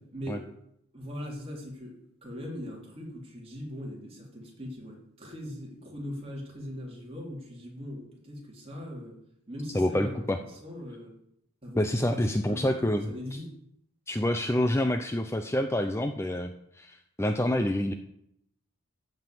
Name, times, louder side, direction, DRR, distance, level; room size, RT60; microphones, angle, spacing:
voice 1, 0.1-0.4 0.9-9.2 9.5-11.1 11.6-11.8 12.1-13.5, equal, 25° right, -2 dB, 3.5 m, -40 dB
voice 2, 9.7-10.4 11.8-13.4 14.1-17.9, left 1 dB, 10° left, 6 dB, 0.5 m, -27 dB
15.0 x 5.5 x 7.8 m, 0.75 s
head